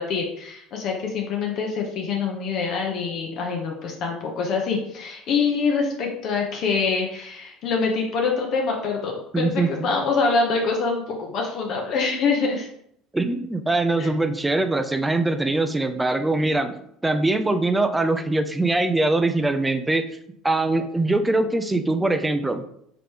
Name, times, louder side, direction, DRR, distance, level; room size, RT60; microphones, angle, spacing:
voice 1, 0.0-12.7 14.0-14.1, left 4 dB, 55° left, 1 dB, 0.8 m, -25 dB
voice 2, 9.3-9.9 13.1-20.0 20.4-22.6, right 2 dB, 10° right, 8 dB, 0.5 m, -22 dB
3.9 x 3.2 x 3.5 m, 0.72 s
hypercardioid pair, 70°, 0 cm